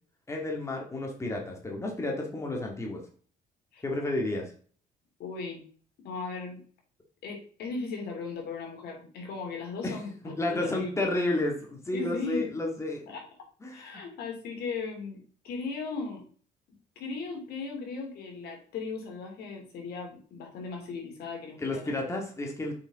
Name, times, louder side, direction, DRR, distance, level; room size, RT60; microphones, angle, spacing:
voice 1, 0.3-3.0 3.8-4.5 9.8-10.0 10.4-13.0 13.6-13.9 21.6-22.7, left 2 dB, 15° left, 1 dB, 2.0 m, -31 dB
voice 2, 5.2-5.6 6.0-6.6 7.2-10.9 11.9-12.7 13.1-13.3 13.7-16.2 16.7-21.9, left 4 dB, 70° left, 1 dB, 2.8 m, -37 dB
6.9 x 5.7 x 3.6 m, 0.44 s
cardioid pair, 110°, 17 cm